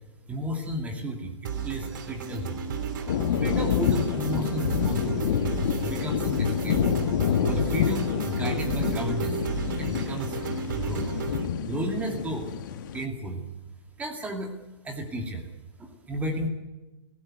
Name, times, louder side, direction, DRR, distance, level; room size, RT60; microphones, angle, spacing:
voice 1, 0.3-2.6 3.4-5.3 5.8-6.8 7.5-9.4 9.8-10.4 10.7-11.1 11.6-12.5 12.9-13.4 14.0-14.5 14.8-15.5 15.8-16.5, right 1 dB, 10° right, 3 dB, 2.4 m, -33 dB
sound 1, 1.4-11.5, right 6 dB, 45° right, 2.8 m, -33 dB
sound 2, 3.1-13.1, left 8 dB, 40° left, 1.5 m, -27 dB
20.0 x 17.0 x 9.4 m, 1.1 s
figure-of-eight pair, 120°, 15 cm